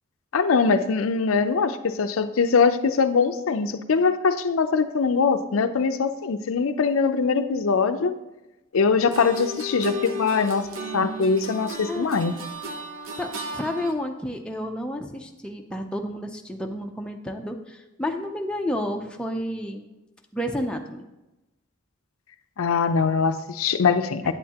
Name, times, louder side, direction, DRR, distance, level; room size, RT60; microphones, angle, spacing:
voice 1, 0.3-8.1 8.7-10.7 10.9-12.3 22.6-24.3, left 5 dB, 85° left, 9 dB, 0.5 m, -22 dB
sound 1, 8.9-13.9, equal, 75° right, 0.8 m, -34 dB
voice 2, 11.9-12.3 13.2-19.9 20.3-21.0 24.2-24.3, left 1 dB, 5° left, 2 dB, 0.5 m, -31 dB
8.8 x 8.5 x 2.9 m, 1.0 s
head